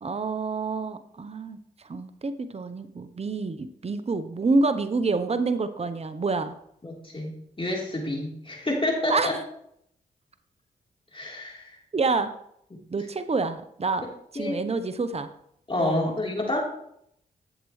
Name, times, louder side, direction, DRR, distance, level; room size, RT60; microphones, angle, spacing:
voice 1, 0.0-1.6 1.9-6.5 9.1-9.3 11.9-12.3 12.9-14.1 14.3-15.3 15.8-16.1, right 3 dB, 35° right, 11 dB, 0.9 m, -27 dB
voice 2, 6.8-9.3 11.1-11.8 14.4-14.6 15.7-16.6, left 1 dB, 30° left, -2 dB, 3.7 m, -28 dB
12.0 x 7.5 x 3.2 m, 0.72 s
supercardioid pair, 40°, 18 cm